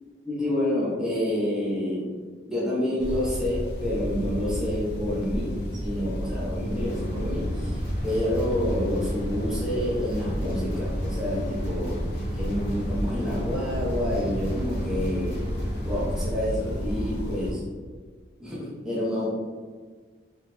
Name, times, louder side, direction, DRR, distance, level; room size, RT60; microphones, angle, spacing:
voice 1, 0.2-2.2 2.5-12.0 12.3-15.5 15.8-17.6 18.4-19.3, left 1 dB, 5° right, -7 dB, 0.6 m, -28 dB
sound 1, 3.0-17.5, equal, 60° left, 0.5 m, -32 dB
sound 2, 6.7-16.3, equal, 80° left, 0.9 m, -35 dB
2.9 x 2.8 x 2.2 m, 1.5 s
head